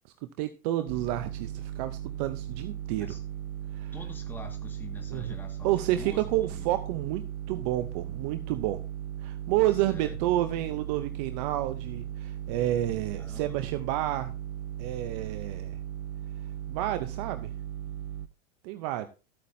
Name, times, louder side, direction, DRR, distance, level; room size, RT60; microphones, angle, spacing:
voice 1, 0.4-3.2 3.7-3.9 5.1-5.3 5.6-8.8 9.2-14.3 14.8-15.8 16.7-17.5 18.6-19.1, right 14 dB, 30° right, 10 dB, 0.5 m, -30 dB
sound 1, 0.9-18.3, right 11 dB, 80° right, 0.6 m, -37 dB
voice 2, 3.9-6.7 9.8-10.2 13.2-13.6, left 2 dB, 5° left, 2 dB, 1.6 m, -45 dB
13.5 x 8.5 x 2.6 m, 0.30 s
supercardioid pair, 145°, 42 cm